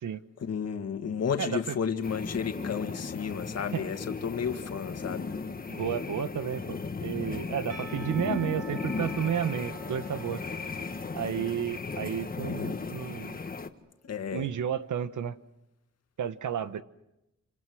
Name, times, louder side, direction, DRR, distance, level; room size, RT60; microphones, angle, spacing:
voice 1, 0.4-5.3 14.0-14.5, left 7 dB, 60° left, 7 dB, 2.1 m, -32 dB
voice 2, 1.4-1.8 3.7-3.8 5.7-10.4 11.1-13.4 14.3-15.4 16.2-16.8, right 8 dB, 90° right, 12 dB, 1.3 m, -32 dB
sound 1, 2.0-13.7, left 4 dB, 30° left, 1.4 m, -36 dB
Percussion / Church bell, 7.7-12.8, right 4 dB, 65° right, 7.2 m, -48 dB
28.5 x 26.5 x 6.4 m, 0.88 s
wide cardioid pair, 160°, 29 cm